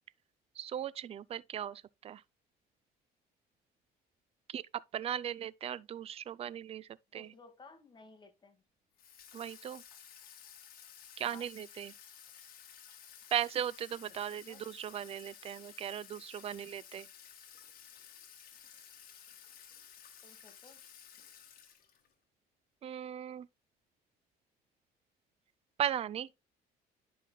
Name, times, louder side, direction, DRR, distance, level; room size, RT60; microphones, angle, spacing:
voice 1, 0.6-2.2 4.5-4.6 4.9-7.3 9.3-9.8 11.2-11.9 13.3-17.1 22.8-23.5 25.8-26.3, right 10 dB, 35° right, 0.4 m, -37 dB
voice 2, 7.1-8.6 11.2-11.5 14.1-14.6 20.2-20.8, left 3 dB, 25° left, 1.8 m, -57 dB
Water tap faucet / Sink (filling or washing), 9.0-22.1, left 8 dB, 60° left, 1.4 m, -54 dB
10.0 x 5.5 x 2.2 m
cardioid pair, 110°, 17 cm